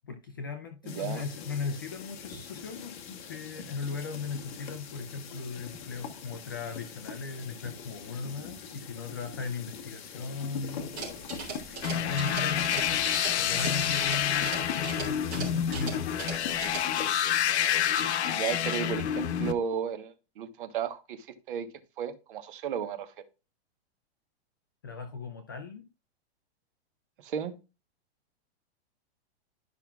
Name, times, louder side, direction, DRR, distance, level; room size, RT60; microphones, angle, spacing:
voice 1, 0.0-10.9 11.9-16.1 16.4-16.5 24.8-25.9, left 4 dB, 20° left, 0.3 m, -37 dB
voice 2, 0.8-1.3 18.2-21.7 22.0-23.1 27.2-27.5, right 8 dB, 50° right, 1.2 m, -34 dB
sound 1, 0.9-17.1, left 6 dB, 45° left, 1.3 m, -43 dB
sound 2, 10.9-16.8, right 4 dB, 35° right, 3.2 m, -40 dB
sound 3, 11.8-19.5, left 9 dB, 90° left, 0.9 m, -28 dB
12.0 x 5.6 x 2.4 m
supercardioid pair, 175°, 32 cm